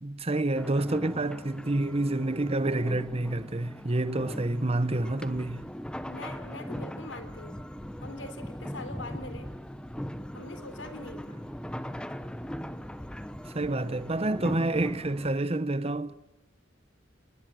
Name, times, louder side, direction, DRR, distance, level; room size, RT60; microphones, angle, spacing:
voice 1, 0.0-5.6 13.4-16.1, right 2 dB, 30° right, 1.0 m, -28 dB
sound 1, 0.6-15.3, equal, 5° left, 0.9 m, -40 dB
voice 2, 6.1-7.6 8.0-9.5 10.3-11.4, left 2 dB, 85° left, 3.5 m, -43 dB
30.0 x 20.5 x 7.7 m
head